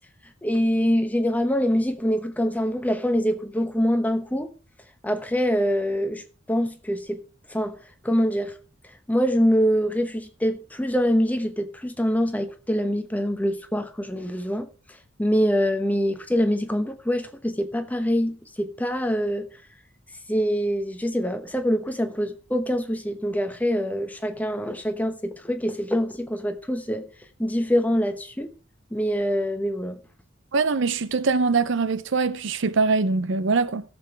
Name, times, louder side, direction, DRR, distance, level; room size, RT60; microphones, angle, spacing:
voice 1, 0.4-4.5 5.0-6.2 6.5-7.2 7.5-7.8 8.0-8.5 9.1-14.7 15.2-19.5 20.3-27.0 27.4-28.5 28.9-30.0, equal, 10° left, 0.9 m, -24 dB
voice 2, 30.5-33.8, right 4 dB, 60° right, 0.6 m, -23 dB
17.0 x 7.1 x 3.4 m
head